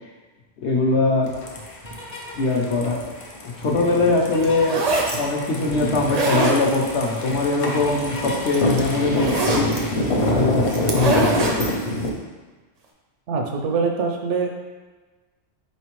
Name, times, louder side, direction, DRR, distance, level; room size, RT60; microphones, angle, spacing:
voice 1, 0.6-1.3 2.3-3.1 3.4-9.7 10.3-11.5, left 3 dB, 70° left, 0 dB, 0.9 m, -22 dB
sound 1, 1.2-12.1, left 1 dB, 50° left, 0.4 m, -26 dB
sound 2, 1.8-2.5 4.2-4.9 6.6-6.7 7.1-8.5 8.8-10.4, left 2 dB, 35° left, 0.8 m, -37 dB
sound 3, 4.4-5.2 5.9-7.0 8.2-8.3 8.5-9.8 10.7-11.7, right 2 dB, 50° right, 0.5 m, -23 dB
voice 2, 13.3-14.5, right 5 dB, 80° right, 2 dB, 0.9 m, -23 dB
4.2 x 3.2 x 3.0 m, 1.3 s
omnidirectional pair, 1.2 m